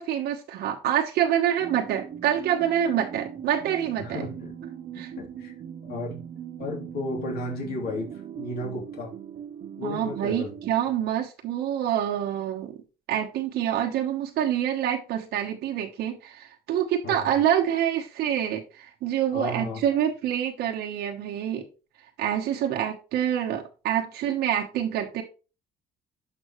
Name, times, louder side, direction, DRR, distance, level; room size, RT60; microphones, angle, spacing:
voice 1, 0.0-4.3 4.9-5.1 9.8-12.8 13.1-21.6 22.2-25.2, right 10 dB, 80° right, 1.1 m, -26 dB
sound 1, 1.6-10.7, right 8 dB, 50° right, 1.0 m, -40 dB
voice 2, 4.0-4.5 4.9-5.5 5.9-6.2 6.6-8.1 8.4-9.1 9.8-10.5 17.0-17.4 19.3-19.9, left 2 dB, 65° left, 3.0 m, -34 dB
11.0 x 5.4 x 3.1 m
cardioid pair, 110°, 17 cm